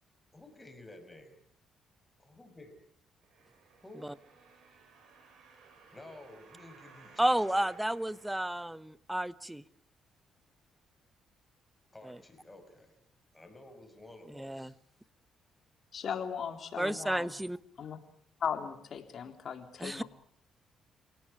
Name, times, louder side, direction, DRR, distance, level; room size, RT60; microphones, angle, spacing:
voice 1, 0.3-1.4 2.2-2.7 3.8-4.1 5.9-7.7 11.9-12.9 13.3-14.7, left 2 dB, 15° left, 5.8 m, -52 dB
sound 1, 3.2-9.1 9.7-9.8, right 5 dB, 75° right, 7.6 m, -59 dB
voice 2, 7.2-9.6 12.1-12.2 14.4-14.7 16.8-17.6 19.8-20.0, right 1 dB, 5° right, 1.1 m, -31 dB
voice 3, 15.9-17.3 17.8-18.0 18.4-20.0, left 7 dB, 55° left, 3.7 m, -37 dB
27.5 x 18.0 x 8.6 m
cardioid pair, 90°, 0 cm